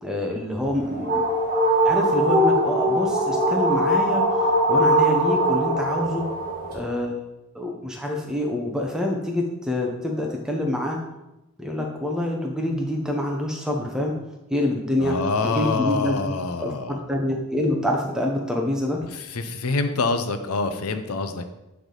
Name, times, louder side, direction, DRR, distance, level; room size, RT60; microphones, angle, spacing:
voice 1, 0.0-1.3 1.8-4.2 4.7-6.3 6.7-7.2 7.5-11.0 11.6-14.1 14.5-15.2 15.4-16.2 16.6-19.0, left 1 dB, 5° right, 0 dB, 0.8 m, -26 dB
sound 1, 0.6-6.8, right 1 dB, 45° right, 1.7 m, -21 dB
voice 2, 15.0-17.0 19.3-21.4, left 3 dB, 85° left, 9 dB, 0.6 m, -25 dB
9.0 x 3.5 x 3.9 m, 0.96 s
head